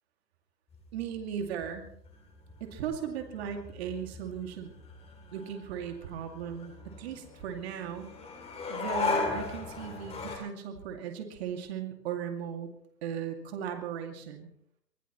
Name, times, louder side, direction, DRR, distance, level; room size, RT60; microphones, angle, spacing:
sound 1, 0.7-10.4, left 4 dB, 10° left, 2.9 m, -38 dB
voice 1, 0.9-1.8 2.6-4.7 5.3-8.1 8.7-12.7 13.0-14.5, right 8 dB, 40° right, 5 dB, 2.4 m, -37 dB
24.5 x 18.5 x 3.1 m, 0.67 s
hypercardioid pair, 135°, 50 cm